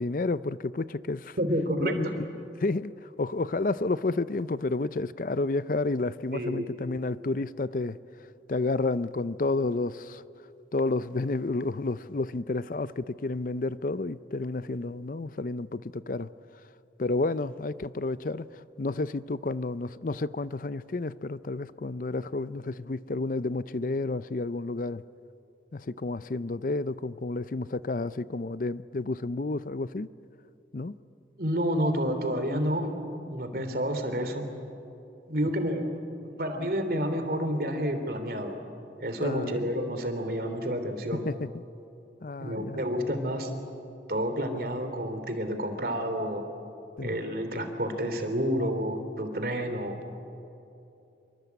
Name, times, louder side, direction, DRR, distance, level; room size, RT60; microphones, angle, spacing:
voice 1, 0.0-1.4 1.8-8.0 8.5-10.2 10.7-16.3 17.0-25.0 25.7-30.1 30.7-31.0 33.6-33.8 39.2-39.6 41.3-41.5 42.2-42.8 47.0-47.1, left 3 dB, 50° left, 16 dB, 0.5 m, -31 dB
voice 2, 1.4-2.2 6.3-6.7 31.4-32.9 33.3-34.5 35.3-35.8 36.4-38.6 39.0-41.3 42.4-43.5 44.1-46.4 47.0-50.0, equal, 55° right, 7 dB, 3.1 m, -29 dB
27.0 x 23.0 x 8.2 m, 2.8 s
head